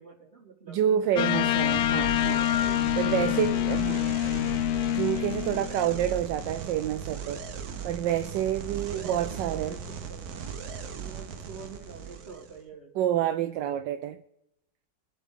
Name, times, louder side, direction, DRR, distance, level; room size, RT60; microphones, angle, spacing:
voice 1, 0.0-1.1 3.1-3.7 8.6-10.4 11.0-13.1, right 5 dB, 35° right, -4 dB, 4.1 m, -46 dB
voice 2, 0.7-4.1 4.9-7.4 7.8-9.8 12.9-14.2, right 10 dB, 80° right, 10 dB, 1.2 m, -28 dB
sound 1, 1.2-6.1, left 13 dB, 70° left, 0.9 m, -26 dB
sound 2, 1.2-12.6, right 7 dB, 60° right, 1.4 m, -38 dB
23.5 x 8.2 x 3.6 m, 0.84 s
omnidirectional pair, 2.0 m